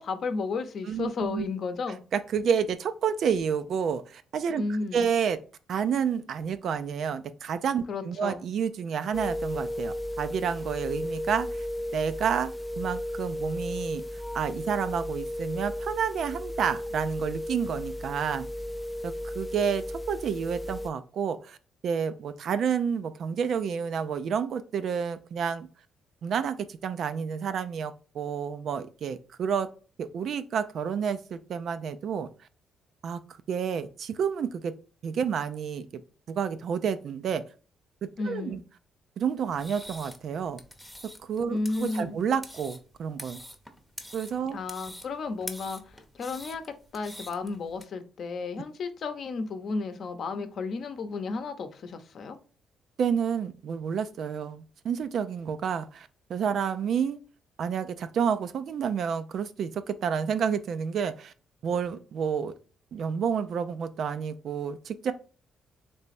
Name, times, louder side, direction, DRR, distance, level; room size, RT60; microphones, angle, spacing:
voice 1, 0.0-2.0 4.6-5.1 7.9-8.5 38.2-38.6 41.5-42.2 44.5-52.4, left 4 dB, 60° left, 0.7 m, -33 dB
voice 2, 0.9-1.4 2.1-4.6 4.9-5.4 5.7-11.7 11.9-12.5 12.8-14.0 14.3-18.5 19.0-21.6 21.8-25.7 26.2-29.7 30.0-32.3 33.0-33.2 33.5-34.8 35.0-36.0 36.3-37.4 38.0-38.6 39.2-40.6 41.0-43.4 44.1-44.6 53.0-57.2 57.6-61.3 61.6-62.5 62.9-65.1, right 7 dB, 65° right, 0.4 m, -29 dB
sound 1, 9.1-20.9, left 1 dB, 15° left, 0.3 m, -34 dB
sound 2, 39.5-47.8, equal, ahead, 0.7 m, -45 dB
3.4 x 3.1 x 4.2 m
cardioid pair, 90°, 0 cm